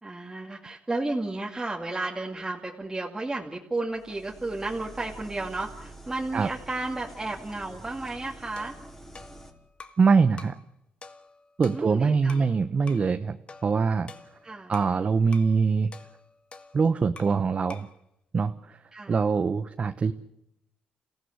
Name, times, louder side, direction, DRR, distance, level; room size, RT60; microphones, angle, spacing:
voice 1, 0.0-8.7 11.6-12.5 14.4-14.7 18.9-19.2, right 2 dB, 15° right, -1 dB, 2.4 m, -33 dB
sound 1, 3.9-9.5, right 2 dB, 15° left, 4.2 m, -47 dB
sound 2, 8.6-10.1 10.4-10.7 11.0-12.5 12.9-13.1 13.5-15.0 15.3-15.6 15.9-17.4 17.7-18.0, left 4 dB, 35° left, 1.7 m, -48 dB
voice 2, 10.0-10.6 11.6-13.4 13.6-14.1 14.7-15.9 16.7-17.9 18.3-18.8 19.1-20.1, right 5 dB, 40° right, 9 dB, 0.9 m, -23 dB
29.0 x 15.5 x 8.1 m, 0.83 s
cardioid pair, 85°, 3 cm